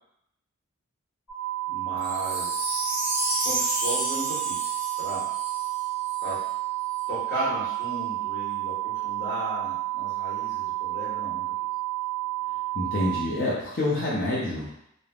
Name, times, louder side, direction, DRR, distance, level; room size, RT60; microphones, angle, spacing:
sound 1, 1.3-13.2, right 18 dB, 75° left, 1.0 m, -31 dB
voice 1, 1.7-2.8 3.4-5.2 6.2-6.4 7.1-11.4, right 1 dB, 15° left, -11 dB, 1.2 m, -35 dB
Wind chime, 2.0-6.4 6.9-7.0, right 1 dB, 25° right, 1.2 m, -31 dB
voice 2, 12.7-14.8, left 1 dB, 45° left, -7 dB, 0.4 m, -27 dB
3.2 x 2.0 x 2.4 m, 0.77 s
head